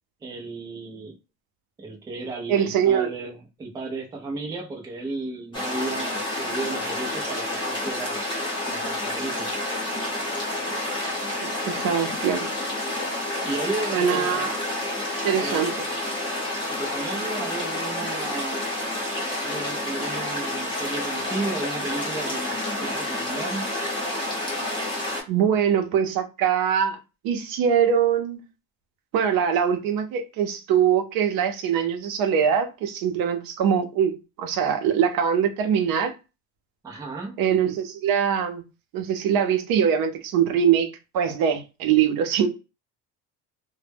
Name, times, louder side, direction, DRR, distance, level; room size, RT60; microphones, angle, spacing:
voice 1, 0.2-1.2 1.8-8.3 8.7-9.5 13.4-14.5 15.3-15.6 16.7-18.7 19.4-23.7 36.8-37.4, right 3 dB, 10° right, 0.4 m, -34 dB
voice 2, 2.5-3.1 10.7-10.8 11.4-12.5 13.9-14.5 15.2-15.9 25.3-27.0 27.2-28.4 29.1-36.1 37.4-38.6 38.9-42.5, right 8 dB, 70° right, 0.6 m, -23 dB
sound 1, 5.5-25.2, left 1 dB, 15° left, 0.8 m, -29 dB
2.1 x 2.1 x 3.3 m
cardioid pair, 165°, 36 cm